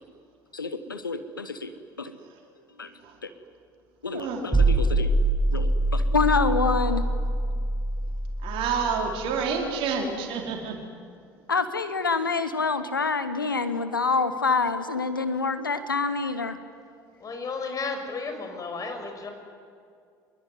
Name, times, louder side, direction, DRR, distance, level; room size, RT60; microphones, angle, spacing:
voice 1, 0.5-1.7 2.0-2.2 2.8-2.9 3.2-3.3 4.0-5.1 5.5-7.0 11.5-16.6, left 4 dB, 85° left, 11 dB, 1.1 m, -27 dB
voice 2, 4.1-4.4 8.4-10.8, right 5 dB, 55° right, 2 dB, 4.8 m, -29 dB
sound 1, 4.5-9.6, right 2 dB, 5° right, 3.0 m, -25 dB
voice 3, 17.2-19.3, left 4 dB, 30° left, 5 dB, 5.9 m, -33 dB
26.0 x 21.5 x 9.6 m, 2.3 s
figure-of-eight pair, 65°, 11 cm